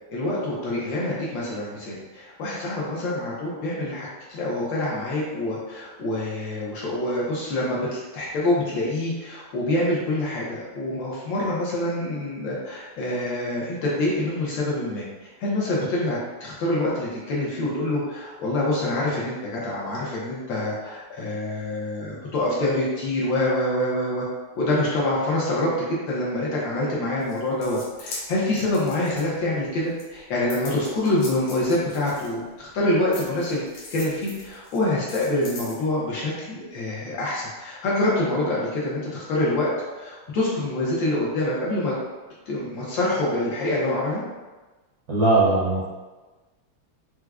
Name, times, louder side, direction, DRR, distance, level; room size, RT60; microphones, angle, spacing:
voice 1, 0.1-15.0 15.4-24.3 24.6-39.7 40.0-41.9 42.5-44.2, left 1 dB, 70° left, -5 dB, 1.2 m, -26 dB
sound 1, 27.2-29.6 30.0-32.7 33.1-35.8, left 3 dB, 90° left, 1.7 m, -40 dB
voice 2, 45.1-45.8, right 2 dB, 75° right, -8 dB, 0.8 m, -19 dB
4.6 x 2.0 x 2.3 m, 1.2 s
omnidirectional pair, 2.4 m